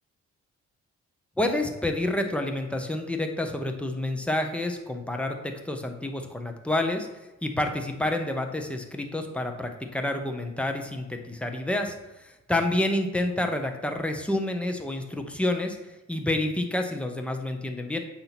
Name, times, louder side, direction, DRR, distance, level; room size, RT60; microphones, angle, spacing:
voice 1, 1.4-7.1 7.4-11.9 12.5-15.8 16.1-18.0, left 1 dB, 5° left, 4 dB, 0.9 m, -28 dB
8.6 x 2.9 x 6.0 m, 1.0 s
cardioid pair, 90°, 30 cm